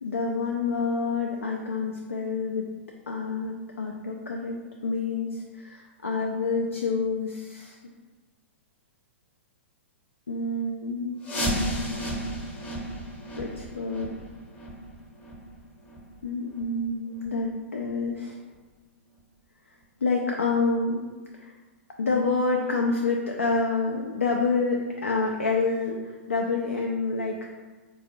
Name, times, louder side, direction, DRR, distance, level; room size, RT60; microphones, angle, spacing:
voice 1, 0.0-2.6 3.1-4.6 4.8-7.8 10.3-11.2 13.4-14.1 16.2-18.4 20.0-21.0 21.3-21.5 22.0-27.5, left 4 dB, 90° left, 0 dB, 0.4 m, -28 dB
sound 1, 11.2-16.8 17.1-17.3 17.8-17.9 18.5-18.6 19.2-19.3, equal, 25° left, 0.8 m, -33 dB
3.8 x 2.4 x 3.0 m, 1.3 s
figure-of-eight pair, 110°, 7 cm